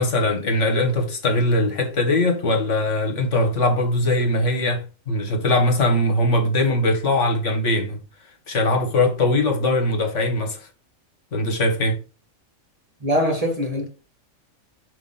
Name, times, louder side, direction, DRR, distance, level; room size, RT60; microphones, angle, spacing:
voice 1, 0.0-8.0 8.5-10.6 11.3-12.0, left 1 dB, 65° left, 1.5 m, -21 dB
voice 2, 13.0-13.9, equal, 30° right, 1.3 m, -22 dB
5.8 x 3.0 x 5.5 m
omnidirectional pair, 1.4 m